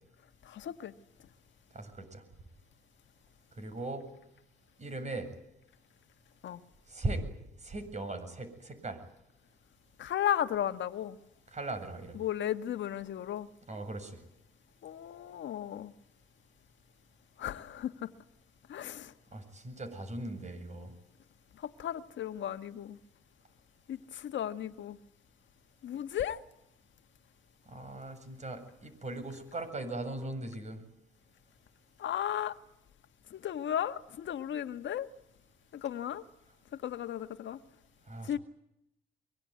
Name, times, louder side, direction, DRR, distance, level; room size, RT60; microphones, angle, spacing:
voice 1, 0.4-0.9 6.4-6.6 10.0-11.2 12.1-13.5 14.8-15.9 17.4-18.1 18.7-19.1 21.6-23.0 23.9-25.0 25.8-26.4 32.0-32.5 33.3-35.1 35.7-36.2 36.8-37.6 38.2-38.4, left 10 dB, 70° left, 1.6 m, -35 dB
voice 2, 1.7-2.2 3.5-4.0 4.8-5.3 6.9-7.2 7.6-9.0 11.5-12.2 13.7-14.2 19.3-20.9 27.7-30.8 38.1-38.4, right 2 dB, 35° right, 7.6 m, -39 dB
23.5 x 23.0 x 9.5 m
cardioid pair, 90°, 20 cm